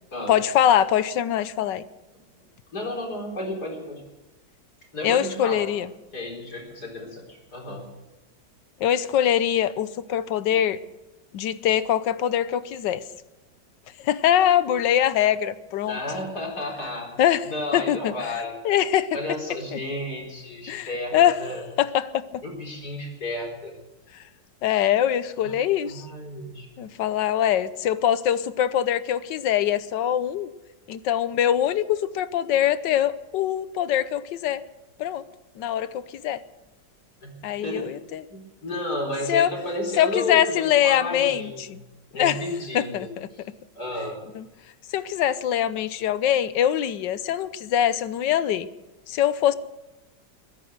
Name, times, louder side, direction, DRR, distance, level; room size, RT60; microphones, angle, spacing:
voice 1, 0.3-1.8 5.0-5.9 8.8-10.8 11.3-13.0 14.0-16.0 17.2-18.1 18.6-19.2 19.7-19.8 20.7-21.4 21.8-22.4 24.6-26.1 26.8-30.5 30.9-34.6 35.0-35.2 35.6-36.4 37.4-38.2 39.3-39.5 40.0-41.8 42.2-42.4 42.7-43.3 44.3-44.4 44.9-48.7 49.1-49.5, left 10 dB, 80° left, 15 dB, 1.4 m, -23 dB
voice 2, 2.7-4.0 4.9-5.6 6.1-7.8 15.9-18.5 19.1-21.6 22.4-23.8 25.4-25.6 25.8-26.7 37.2-37.3 37.6-37.8 38.3-41.7 42.1-43.4 43.7-44.2, left 1 dB, 60° left, 0 dB, 4.8 m, -32 dB
22.0 x 10.0 x 6.5 m, 1.1 s
omnidirectional pair, 1.9 m